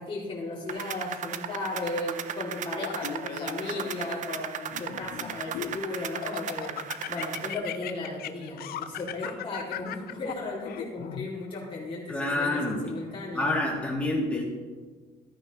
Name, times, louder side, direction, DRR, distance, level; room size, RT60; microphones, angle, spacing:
voice 1, 0.0-13.5, left 2 dB, 30° left, -5 dB, 2.4 m, -35 dB
sound 1, 0.7-7.5, right 9 dB, 50° right, 0.5 m, -36 dB
Laughter, 2.8-4.1 4.7-5.8 6.2-11.3, left 11 dB, 65° left, 0.6 m, -37 dB
voice 2, 12.1-12.8 13.3-14.4, left 2 dB, 5° left, -3 dB, 2.5 m, -27 dB
14.0 x 9.3 x 3.0 m, 1.4 s
cardioid pair, 110°, 17 cm